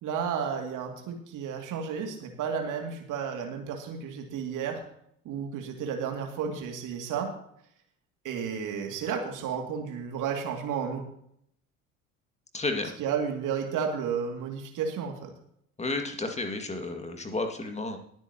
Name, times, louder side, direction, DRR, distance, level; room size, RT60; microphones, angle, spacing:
voice 1, 0.0-4.8 5.2-7.3 8.2-11.0 13.0-15.3, right 7 dB, 50° right, 3 dB, 2.5 m, -32 dB
voice 2, 12.5-12.9 15.8-18.0, left 2 dB, 15° left, 5 dB, 2.1 m, -32 dB
20.0 x 9.0 x 2.9 m, 0.69 s
figure-of-eight pair, 60°, 40 cm